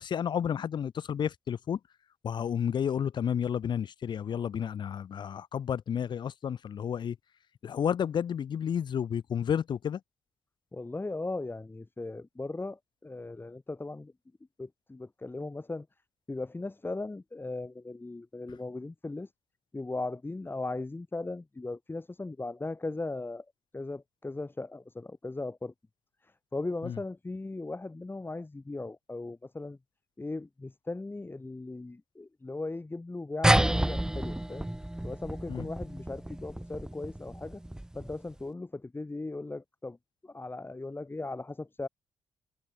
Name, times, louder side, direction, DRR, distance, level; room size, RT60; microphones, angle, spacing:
voice 1, 0.0-1.8 2.2-7.2 7.6-10.0 26.8-27.0 35.5-35.7, left 8 dB, 60° left, 1.2 m, -31 dB
voice 2, 10.7-14.1 14.6-15.9 16.3-19.3 19.7-23.4 23.7-25.7 26.5-29.8 30.2-34.7 35.0-37.6 37.9-40.0 40.2-41.9, left 2 dB, 25° left, 6.7 m, -38 dB
sound 1, 33.4-38.3, right 1 dB, 5° right, 0.9 m, -30 dB
supercardioid pair, 50°, 9 cm